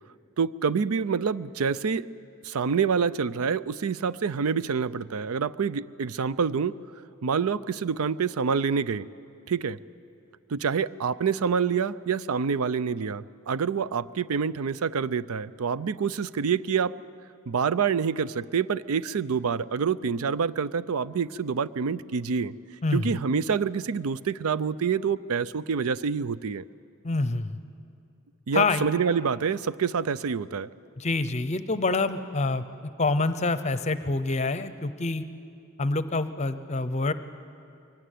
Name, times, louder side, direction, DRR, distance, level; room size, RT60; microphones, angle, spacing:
voice 1, 0.4-2.1 2.4-6.7 7.2-9.1 9.5-9.8 10.5-17.0 17.5-22.5 22.9-26.6 28.5-30.7, right 6 dB, 80° right, 17 dB, 0.5 m, -27 dB
voice 2, 22.8-23.2 27.0-27.6 28.5-28.9 31.0-32.6 33.0-35.2 35.8-37.1, left 3 dB, 30° left, 12 dB, 0.7 m, -26 dB
23.0 x 18.0 x 9.2 m, 2.6 s
head